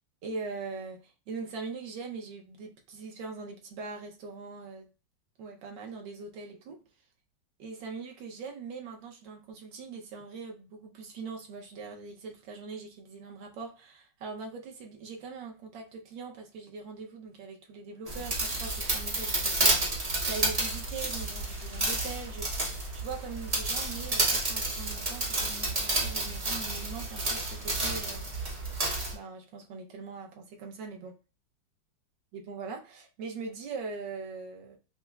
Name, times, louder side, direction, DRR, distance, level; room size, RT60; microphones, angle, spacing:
voice 1, 0.2-4.9 5.4-6.8 7.6-22.7 22.9-28.3 29.1-31.2 32.3-34.8, right 4 dB, 75° right, 1.4 m, -41 dB
sound 1, 18.1-29.1, right 2 dB, 40° right, 0.5 m, -30 dB
5.5 x 2.0 x 2.3 m
omnidirectional pair, 2.1 m